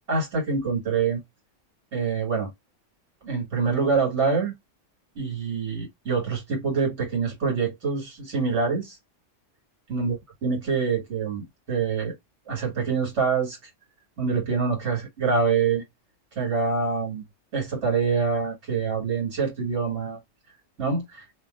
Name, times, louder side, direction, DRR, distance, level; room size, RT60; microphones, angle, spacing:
voice 1, 0.1-1.2 1.9-2.5 3.2-4.5 5.2-9.0 9.9-12.1 12.5-13.6 14.2-15.8 16.4-17.2 17.5-20.2 20.8-21.2, right 5 dB, 70° right, 2.1 m, -25 dB
2.9 x 2.9 x 2.3 m
omnidirectional pair, 1.2 m